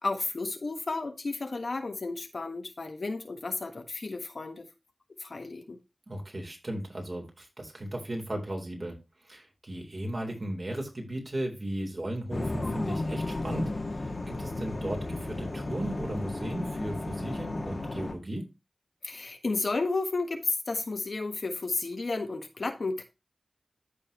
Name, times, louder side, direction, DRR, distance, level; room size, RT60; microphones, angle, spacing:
voice 1, 0.0-4.7 5.2-5.8 19.0-23.0, left 3 dB, 70° left, 1.5 m, -32 dB
voice 2, 6.1-9.0 9.2-18.5, right 1 dB, 45° right, 3.9 m, -36 dB
sound 1, 12.3-18.1, left 2 dB, 55° left, 1.9 m, -34 dB
14.0 x 4.9 x 3.0 m
cardioid pair, 50°, 0 cm